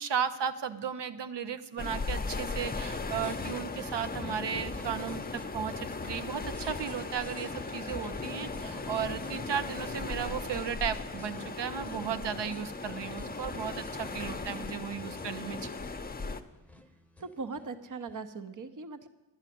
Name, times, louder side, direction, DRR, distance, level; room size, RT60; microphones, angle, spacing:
voice 1, 0.0-15.7, right 8 dB, 80° right, 9 dB, 0.8 m, -35 dB
sound 1, 1.8-16.4, left 3 dB, 20° left, 0.7 m, -37 dB
sound 2, 2.9-18.2, left 2 dB, 5° left, 1.0 m, -49 dB
voice 2, 17.2-19.1, right 4 dB, 50° right, 10 dB, 0.8 m, -40 dB
10.5 x 6.4 x 9.2 m, 1.1 s
cardioid pair, 70°, 41 cm